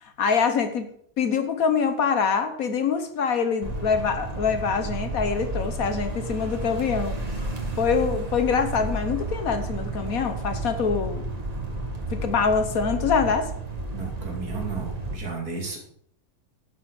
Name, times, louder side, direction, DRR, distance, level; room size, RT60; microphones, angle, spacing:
voice 1, 0.0-0.9 1.2-7.2 7.8-11.2 12.1-13.5, left 5 dB, 70° left, 9 dB, 1.4 m, -24 dB
sound 1, 3.6-15.2, right 2 dB, 25° right, 1.9 m, -32 dB
voice 2, 13.9-15.8, right 4 dB, 80° right, 0 dB, 3.4 m, -33 dB
11.0 x 7.5 x 6.3 m, 0.63 s
omnidirectional pair, 1.6 m